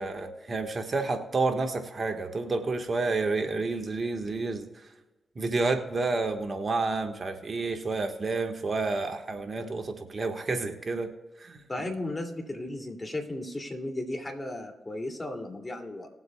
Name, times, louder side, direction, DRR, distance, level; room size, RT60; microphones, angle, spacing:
voice 1, 0.0-4.8 5.3-11.1 11.4-11.6, right 3 dB, 50° right, 5 dB, 1.5 m, -30 dB
voice 2, 11.7-16.1, left 1 dB, 25° left, 2 dB, 2.7 m, -35 dB
20.0 x 7.9 x 2.3 m, 1.2 s
supercardioid pair, 45°, 0 cm